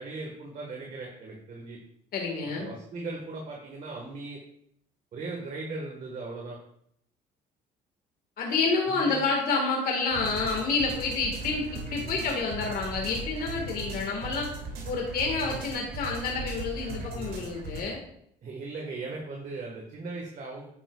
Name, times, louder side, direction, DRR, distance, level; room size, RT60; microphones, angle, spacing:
voice 1, 0.0-1.8 2.5-4.4 5.1-6.6 8.9-9.2 18.4-20.7, right 3 dB, 50° right, 0 dB, 1.6 m, -38 dB
voice 2, 2.1-2.7 8.4-14.5 14.9-18.0, left 4 dB, 60° left, 0 dB, 1.8 m, -29 dB
sound 1, 10.1-17.8, right 2 dB, 65° right, 2.6 m, -38 dB
9.1 x 9.0 x 2.4 m, 0.71 s
cardioid pair, 110°, 17 cm